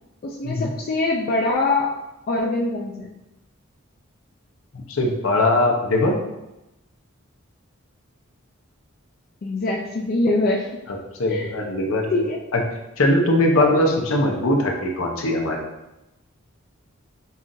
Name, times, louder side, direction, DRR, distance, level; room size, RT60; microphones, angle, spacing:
voice 1, 0.2-1.9 2.3-3.1 9.4-10.8 11.3-11.5 12.1-12.4, left 2 dB, 45° left, -2 dB, 0.3 m, -23 dB
voice 2, 4.7-6.1 10.9-12.2 12.5-12.6 13.0-15.6, left 1 dB, 75° left, 1 dB, 0.7 m, -21 dB
5.5 x 2.5 x 2.6 m, 0.95 s
head